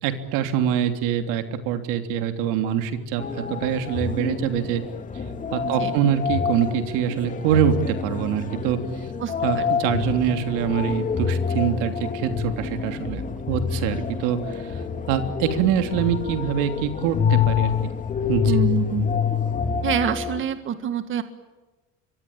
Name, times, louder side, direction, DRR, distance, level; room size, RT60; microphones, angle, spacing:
voice 1, 0.0-4.8 5.5-8.8 9.4-14.8 15.1-17.9 18.3-18.5, right 9 dB, 80° right, 7 dB, 3.3 m, -24 dB
sound 1, 3.2-20.4, left 7 dB, 25° left, 2.5 m, -27 dB
voice 2, 5.6-5.9 9.2-9.6 18.4-19.0 19.8-21.2, right 9 dB, 40° right, 9 dB, 1.8 m, -26 dB
25.5 x 23.5 x 8.8 m, 1.2 s
cardioid pair, 135°, 31 cm